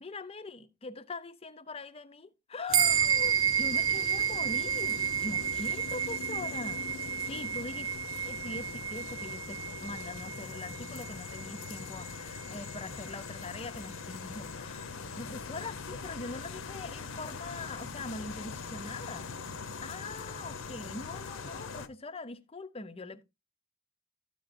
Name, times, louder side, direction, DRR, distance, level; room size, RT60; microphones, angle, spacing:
voice 1, 0.0-7.9 8.2-14.9 15.2-19.3 19.8-23.2, left 3 dB, 25° left, 0.5 m, -42 dB
sound 1, 2.7-21.9, left 5 dB, 60° left, 0.7 m, -42 dB
sound 2, 2.7-12.5, right 9 dB, 65° right, 0.7 m, -31 dB
13.0 x 7.8 x 2.6 m
head